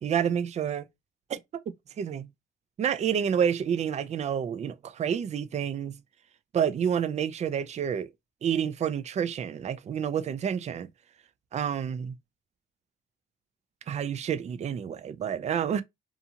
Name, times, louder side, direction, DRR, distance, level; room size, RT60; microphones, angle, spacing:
voice 1, 0.0-0.9 1.3-1.4 1.7-2.3 2.8-6.0 6.5-8.1 8.4-10.9 11.5-12.2 13.9-15.8, right 8 dB, 35° right, 0.4 m, -29 dB
2.7 x 2.4 x 2.7 m
cardioid pair, 90°, 20 cm